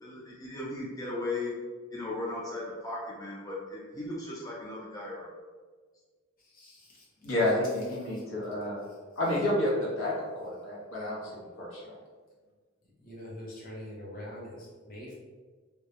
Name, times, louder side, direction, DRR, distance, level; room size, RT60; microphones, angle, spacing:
voice 1, 0.0-1.5 1.9-5.3, left 2 dB, 20° left, -5 dB, 0.3 m, -37 dB
voice 2, 6.4-7.3 8.1-8.2 8.9-9.0 12.8-15.1, equal, 45° left, -5 dB, 0.7 m, -45 dB
voice 3, 7.2-8.8 9.2-11.8, left 1 dB, 85° left, -5 dB, 0.8 m, -30 dB
2.2 x 2.0 x 2.8 m, 1.5 s
head